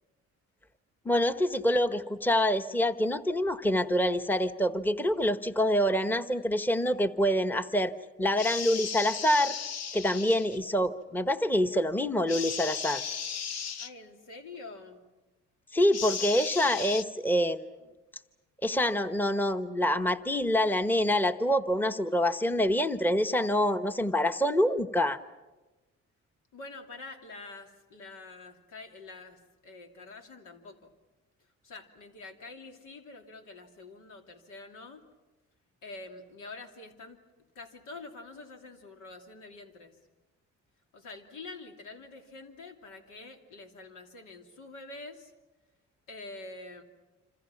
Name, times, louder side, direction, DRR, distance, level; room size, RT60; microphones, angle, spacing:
voice 1, 1.0-7.9 8.2-9.6 9.9-13.0 15.7-17.6 18.6-25.2, equal, 5° left, 9 dB, 1.0 m, -26 dB
sound 1, 8.4-10.6 12.3-13.9 15.9-17.0, left 7 dB, 60° left, 1.1 m, -36 dB
voice 2, 13.8-15.0 26.5-30.9 31.6-35.0 35.8-37.2 37.5-40.0 40.9-45.3 46.1-46.8, left 3 dB, 90° left, 3 dB, 2.9 m, -46 dB
27.0 x 26.5 x 5.9 m, 1.1 s
cardioid pair, 90°, 30 cm